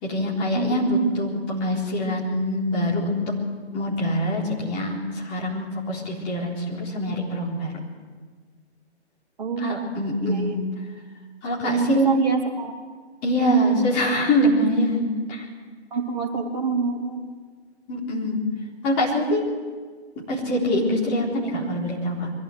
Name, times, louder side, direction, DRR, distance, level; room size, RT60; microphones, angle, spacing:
voice 1, 0.0-3.2 3.7-7.7 9.6-10.6 11.4-12.1 13.2-15.4 17.9-18.4 18.8-19.4 20.3-22.3, equal, 15° left, -4 dB, 3.9 m, -24 dB
voice 2, 9.4-9.9 10.2-10.6 11.6-12.7 15.9-17.2, right 5 dB, 40° right, 0 dB, 3.5 m, -26 dB
23.0 x 16.0 x 8.0 m, 1.5 s
figure-of-eight pair, 145°, 34 cm